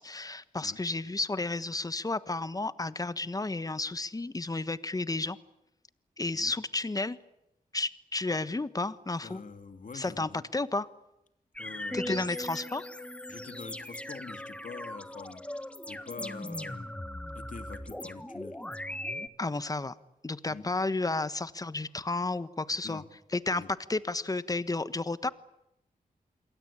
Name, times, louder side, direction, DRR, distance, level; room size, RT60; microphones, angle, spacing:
voice 1, 0.0-5.4 6.2-7.2 7.7-9.4 9.9-10.9 11.9-12.9 19.4-19.9 20.2-23.0 23.3-25.3, left 2 dB, 25° left, 14 dB, 1.3 m, -32 dB
voice 2, 9.2-10.5 11.6-12.3 13.3-16.9 17.3-18.6 20.5-20.7 22.8-23.1 23.5-23.7, left 5 dB, 60° left, 8 dB, 2.9 m, -45 dB
sound 1, 11.6-19.3, left 1 dB, 10° left, 1.5 m, -39 dB
27.5 x 23.0 x 8.8 m, 0.85 s
wide cardioid pair, 100°, 15 cm